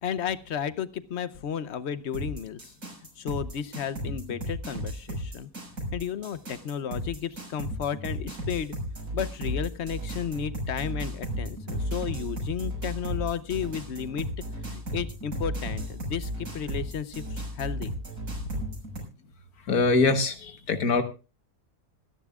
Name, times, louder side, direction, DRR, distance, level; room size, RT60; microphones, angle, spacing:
voice 1, 0.0-2.7 3.2-5.5 5.9-8.7 9.1-14.3 14.7-17.9, left 8 dB, 55° left, 15 dB, 1.0 m, -33 dB
sound 1, 2.1-19.0, equal, 85° right, 6.5 m, -34 dB
voice 2, 19.7-21.0, left 3 dB, 80° left, 8 dB, 1.9 m, -23 dB
25.5 x 11.0 x 2.4 m, 0.30 s
omnidirectional pair, 1.6 m